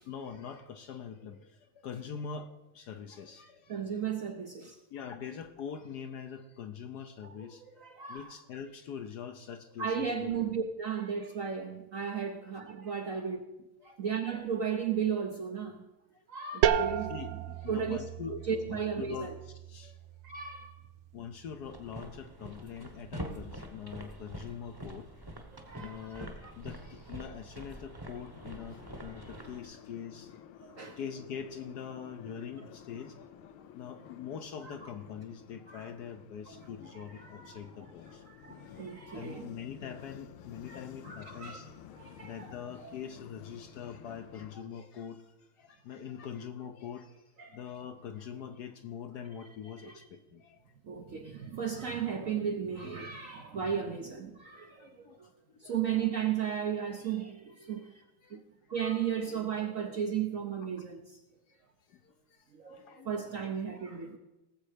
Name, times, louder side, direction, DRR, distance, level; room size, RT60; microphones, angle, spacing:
voice 1, 0.1-3.9 4.9-10.3 13.0-13.1 13.8-14.0 17.1-18.4 18.6-20.0 21.1-25.1 25.7-30.4 31.0-33.2 33.7-38.2 38.6-38.8 39.0-41.7 42.2-47.2 47.5-50.6 54.8-55.2 55.5-55.8 58.2-58.4 61.5-61.6 61.9-63.4, left 7 dB, 65° left, 8 dB, 1.1 m, -44 dB
voice 2, 3.7-4.8 7.8-8.3 9.8-13.4 13.8-15.9 16.3-17.1 17.7-18.0 18.5-19.3 20.2-20.7 25.5-26.5 30.7-31.0 34.6-34.9 35.7-35.9 36.5-36.6 36.9-37.6 38.2-39.5 40.7-41.6 42.0-42.5 42.8-43.0 47.4-47.6 49.6-49.9 50.8-55.3 55.6-58.0 58.3-58.4 58.7-61.2 62.5-64.2, right 7 dB, 60° right, 5 dB, 0.9 m, -35 dB
sound 1, 16.6-22.2, right 9 dB, 80° right, 1.4 m, -34 dB
sound 2, 21.6-29.6, right 1 dB, 15° right, 0.9 m, -45 dB
sound 3, 28.3-44.6, left 9 dB, 85° left, 1.5 m, -52 dB
18.0 x 7.3 x 5.0 m, 0.98 s
omnidirectional pair, 2.2 m